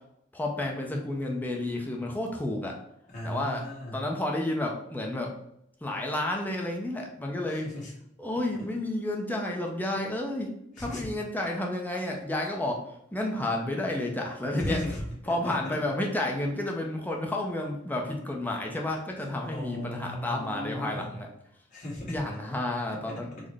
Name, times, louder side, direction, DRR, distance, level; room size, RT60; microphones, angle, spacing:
voice 1, 0.3-2.8 3.2-3.6 3.9-5.3 5.8-7.6 8.2-10.5 10.8-12.8 13.1-14.8 15.3-21.3 22.1-23.3, left 1 dB, 10° left, 0 dB, 0.4 m, -31 dB
voice 2, 3.1-4.0 7.5-7.9 8.5-8.7 10.7-11.1 14.6-15.8 19.2-21.1 21.7-22.2 22.9-23.5, left 1 dB, 40° left, -6 dB, 1.3 m, -37 dB
3.8 x 2.0 x 3.3 m, 0.77 s
head